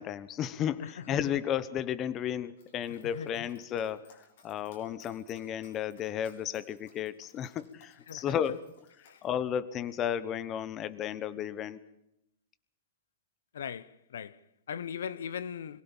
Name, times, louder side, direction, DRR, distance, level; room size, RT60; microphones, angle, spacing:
voice 1, 0.0-8.7 9.2-11.8, left 9 dB, 25° left, 1.0 m, -33 dB
voice 2, 0.8-1.4 3.0-3.3 8.1-8.4 9.0-9.2 13.5-15.8, left 8 dB, 85° left, 1.1 m, -40 dB
Dog, 2.6-9.3, left 5 dB, 60° left, 6.6 m, -62 dB
23.0 x 16.5 x 7.2 m
hypercardioid pair, 155°, 0 cm